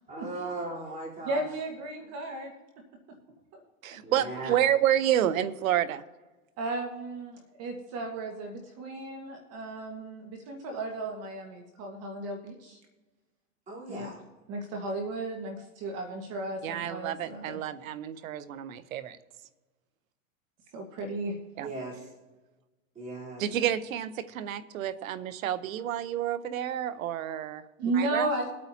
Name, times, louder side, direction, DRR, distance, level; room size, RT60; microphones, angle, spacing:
voice 1, 0.1-1.4 4.0-4.6 13.7-14.2 21.6-22.1 23.0-23.4, right 2 dB, 20° right, -5 dB, 3.7 m, -38 dB
voice 2, 1.2-2.5 3.5-3.9 6.6-12.8 13.9-14.1 14.5-17.6 20.7-21.3 27.8-28.5, right 2 dB, 40° right, 3 dB, 1.6 m, -34 dB
voice 3, 3.8-6.0 16.6-19.2 21.6-21.7 23.4-28.3, right 11 dB, 80° right, 15 dB, 0.9 m, -29 dB
22.5 x 8.7 x 2.8 m, 1.2 s
supercardioid pair, 130°, 40 cm